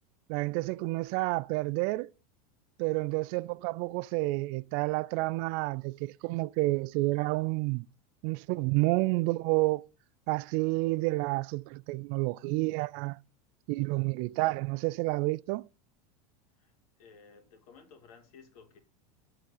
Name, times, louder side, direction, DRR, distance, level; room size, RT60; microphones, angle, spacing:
voice 1, 0.3-2.1 2.8-7.9 8.2-9.8 10.3-13.2 13.7-15.7, right 22 dB, 55° right, 0.4 m, -29 dB
voice 2, 16.6-18.8, left 5 dB, 80° left, 2.3 m, -56 dB
6.7 x 6.2 x 5.5 m
supercardioid pair, 120°, 19 cm